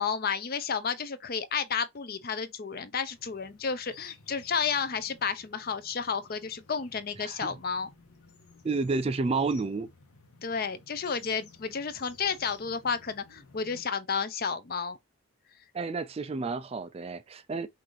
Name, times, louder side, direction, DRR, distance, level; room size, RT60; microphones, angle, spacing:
voice 1, 0.0-7.9 10.4-15.0, left 6 dB, 45° left, 0.5 m, -31 dB
sound 1, 3.0-13.8, left 5 dB, 85° left, 1.1 m, -55 dB
voice 2, 7.2-7.5 8.6-9.9 15.7-17.7, right 3 dB, 25° right, 0.3 m, -30 dB
5.9 x 2.6 x 3.1 m
head